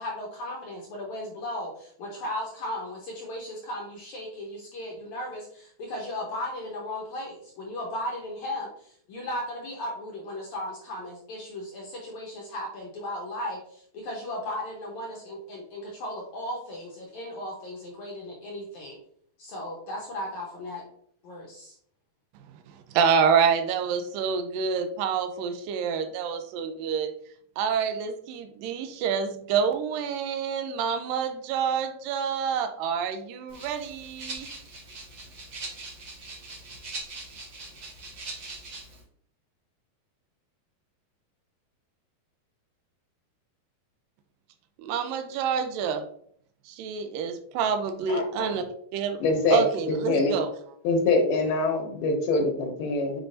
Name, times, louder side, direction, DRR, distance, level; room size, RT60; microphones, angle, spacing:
voice 1, 0.0-19.0 19.4-20.8 21.2-21.7, left 1 dB, 70° left, -2 dB, 1.8 m, -36 dB
voice 2, 22.7-27.1 27.6-34.5 44.8-46.0 46.7-48.6 48.9-49.2 49.5-50.5, right 6 dB, 80° right, 7 dB, 2.1 m, -27 dB
Rattle (instrument), 33.5-39.0, right 3 dB, 50° right, 1.4 m, -41 dB
voice 3, 48.1-48.5 49.2-50.4 50.8-53.2, left 3 dB, 85° left, 2 dB, 3.1 m, -24 dB
7.7 x 5.0 x 2.6 m, 0.64 s
omnidirectional pair, 4.5 m